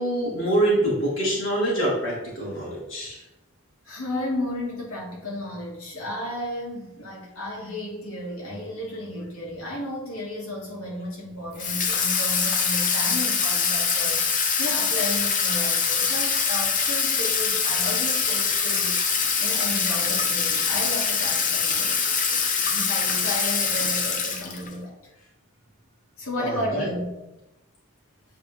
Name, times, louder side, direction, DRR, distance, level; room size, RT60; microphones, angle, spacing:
voice 1, 0.0-3.2 26.4-26.9, right 1 dB, 65° left, -6 dB, 2.2 m, -25 dB
voice 2, 3.8-18.9 19.4-22.1 22.7-25.0 26.2-27.1, left 1 dB, 85° left, -5 dB, 2.5 m, -33 dB
Water tap faucet / Sink (filling or washing), 11.6-24.7, left 5 dB, 40° left, 0.8 m, -24 dB
8.3 x 4.2 x 3.5 m, 0.93 s
head